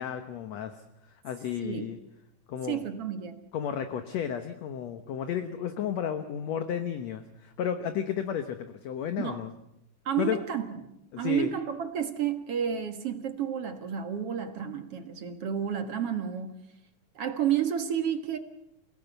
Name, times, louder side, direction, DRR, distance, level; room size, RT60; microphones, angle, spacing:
voice 1, 0.0-2.0 2.5-2.8 3.5-9.5 10.2-10.4 11.1-11.5, left 8 dB, 65° left, 8 dB, 1.9 m, -33 dB
voice 2, 2.7-3.4 9.2-9.4 10.1-10.7 11.2-16.5 17.2-18.4, right 9 dB, 50° right, 7 dB, 2.1 m, -30 dB
28.0 x 17.5 x 8.1 m, 0.83 s
omnidirectional pair, 4.0 m